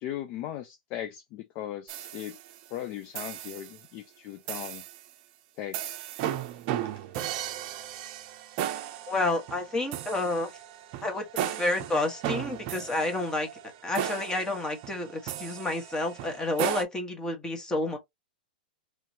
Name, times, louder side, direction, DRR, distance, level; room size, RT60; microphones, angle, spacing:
voice 1, 0.0-2.4 2.7-4.8 5.6-5.9, left 12 dB, 40° left, 0.5 m, -38 dB
sound 1, 1.9-2.7 3.1-3.8 4.5-5.0 5.7-16.8, right 11 dB, 45° right, 0.6 m, -36 dB
voice 2, 9.1-10.5 11.0-13.5 13.8-18.0, left 2 dB, 15° left, 1.3 m, -30 dB
3.1 x 2.9 x 2.8 m
hypercardioid pair, 110°, 5 cm